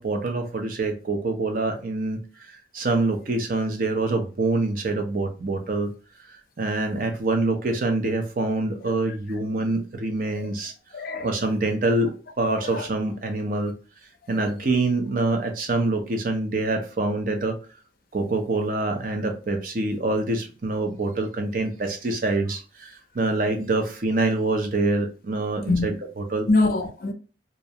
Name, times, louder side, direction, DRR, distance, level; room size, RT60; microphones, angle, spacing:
voice 1, 0.0-2.2 2.5-5.9 6.3-10.7 11.2-12.1 12.4-13.7 14.3-17.6 18.1-26.5, right 2 dB, 50° right, 0.5 m, -25 dB
voice 2, 10.9-11.4 12.6-12.9 25.7-25.9 26.5-27.1, left 2 dB, 50° left, 0.4 m, -24 dB
2.4 x 2.0 x 2.7 m
head